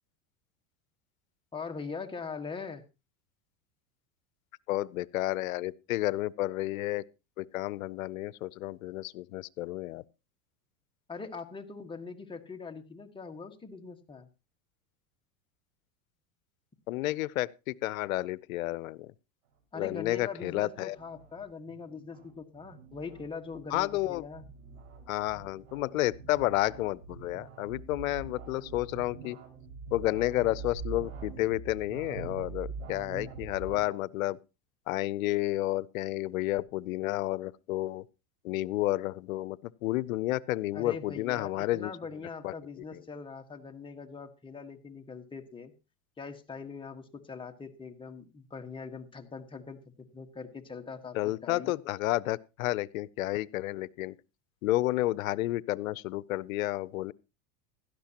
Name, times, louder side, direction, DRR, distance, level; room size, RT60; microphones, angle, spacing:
voice 1, 1.5-2.8 11.1-14.3 19.7-24.4 40.7-45.7 46.2-51.7, left 5 dB, 10° left, 1.4 m, -42 dB
voice 2, 4.7-7.0 7.4-10.0 16.9-19.1 19.7-21.0 23.7-24.2 25.1-29.4 29.9-34.4 34.9-38.0 38.4-41.9 42.4-42.5 51.1-54.2 54.6-57.1, left 17 dB, 90° left, 0.6 m, -31 dB
sound 1, 19.9-33.8, right 4 dB, 75° right, 5.4 m, -44 dB
16.5 x 12.0 x 2.9 m
supercardioid pair, 120°, 40 cm